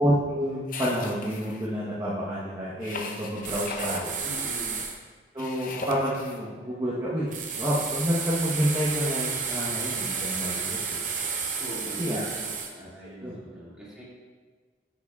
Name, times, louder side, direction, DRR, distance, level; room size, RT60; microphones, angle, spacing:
voice 1, 0.0-4.3 5.3-11.1 12.0-12.2 12.8-12.9 13.2-13.3, equal, 20° right, -8 dB, 1.0 m, -29 dB
sound 1, 0.7-1.6 2.8-4.1 5.4-6.4, left 3 dB, 50° left, 0.7 m, -37 dB
sound 2, 3.4-5.0 7.3-12.7, right 5 dB, 45° right, 0.7 m, -31 dB
voice 2, 4.2-4.8 11.6-14.0, equal, 5° right, -9 dB, 2.2 m, -42 dB
9.9 x 7.0 x 2.4 m, 1.5 s
head